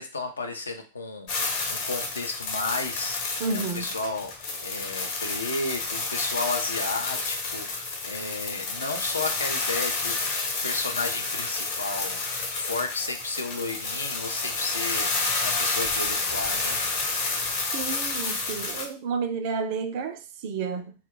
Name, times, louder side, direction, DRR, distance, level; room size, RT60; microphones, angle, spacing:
voice 1, 0.0-1.3 1.7-16.8, left 3 dB, 75° left, 0.5 m, -33 dB
sound 1, 1.3-18.8, left 3 dB, 50° left, 0.9 m, -30 dB
voice 2, 3.4-3.9 17.7-20.9, right 5 dB, 50° right, 0.4 m, -31 dB
2.2 x 2.2 x 3.6 m
figure-of-eight pair, 90°, 0 cm